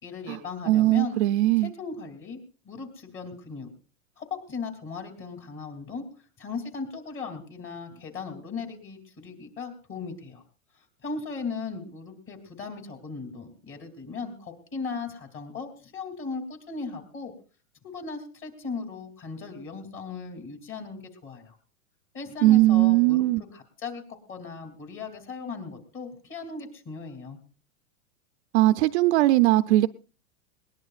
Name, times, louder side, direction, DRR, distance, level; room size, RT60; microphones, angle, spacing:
voice 1, 0.0-1.2 1.6-2.4 2.6-3.7 4.2-10.4 10.7-17.3 17.8-21.6 22.1-23.3 23.5-24.0 24.3-27.4, left 4 dB, 30° left, 3.1 m, -37 dB
voice 2, 0.7-1.7 22.4-23.4 28.5-29.9, right 16 dB, 55° right, 0.6 m, -20 dB
20.5 x 19.0 x 2.4 m
hypercardioid pair, 135°, 41 cm